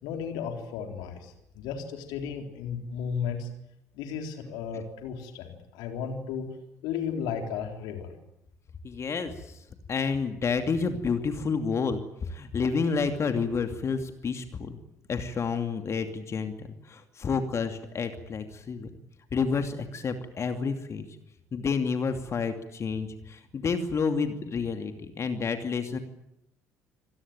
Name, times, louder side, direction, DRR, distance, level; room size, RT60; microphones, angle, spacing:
voice 1, 0.0-3.5 3.9-6.5 6.8-8.1, left 7 dB, 60° left, 5 dB, 3.8 m, -34 dB
voice 2, 8.8-9.6 9.9-14.8 15.1-18.9 19.3-21.1 21.5-26.0, left 5 dB, 35° left, 7 dB, 2.7 m, -29 dB
27.0 x 19.0 x 9.0 m, 0.80 s
figure-of-eight pair, 55°, 8 cm